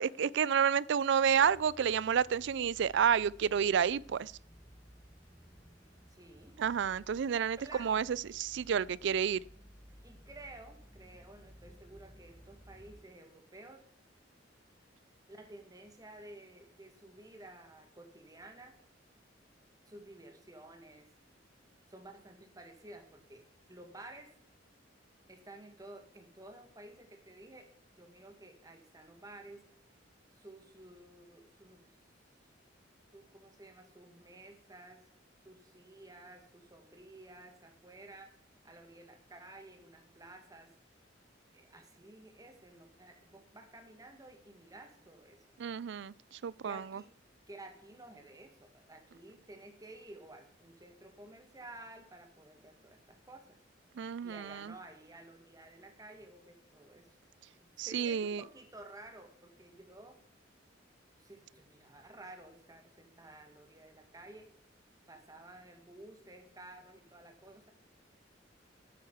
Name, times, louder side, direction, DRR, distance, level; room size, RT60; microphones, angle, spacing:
voice 1, 0.0-4.3 6.6-9.4 45.6-47.0 54.0-54.7 57.8-58.4, right 7 dB, 70° right, 0.4 m, -30 dB
sound 1, 1.2-13.0, equal, 20° left, 3.8 m, -57 dB
voice 2, 6.1-6.6 7.6-8.0 10.0-13.8 15.3-18.8 19.9-21.1 21.9-24.3 25.3-29.7 30.3-32.0 33.1-35.0 35.4-38.4 38.6-40.7 41.5-45.4 46.6-47.1 47.5-53.6 54.2-57.1 57.6-60.2 61.2-64.5 65.1-67.7, right 2 dB, 20° right, 2.0 m, -53 dB
9.5 x 9.1 x 7.1 m
head